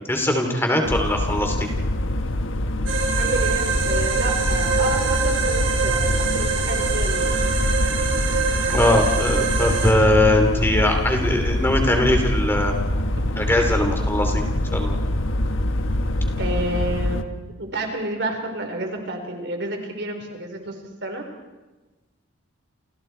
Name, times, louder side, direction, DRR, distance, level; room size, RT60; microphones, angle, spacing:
voice 1, 0.0-1.7 8.7-12.7 13.4-14.5 14.7-15.0, left 1 dB, 10° left, 3 dB, 2.9 m, -21 dB
sound 1, 0.8-17.2, left 1 dB, 80° left, 1.3 m, -24 dB
sound 2, 2.9-9.9, right 5 dB, 75° right, 5.3 m, -24 dB
voice 2, 3.2-7.4 16.4-17.3 17.6-21.3, right 1 dB, 60° right, 4 dB, 4.2 m, -30 dB
30.0 x 28.5 x 4.5 m, 1.2 s
head